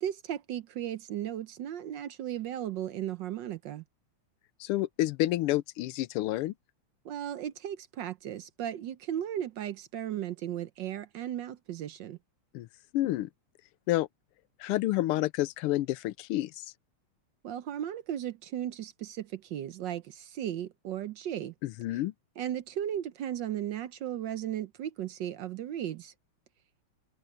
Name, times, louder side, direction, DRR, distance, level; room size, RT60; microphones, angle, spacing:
voice 1, 0.0-3.8 7.0-12.2 17.4-21.5 22.4-26.1, right 11 dB, 65° right, 1.2 m, -36 dB
voice 2, 4.6-6.5 12.5-12.7 12.9-13.3 13.9-14.1 14.6-16.6 21.6-22.1, left 16 dB, 90° left, 1.6 m, -29 dB
omnidirectional pair, 2.4 m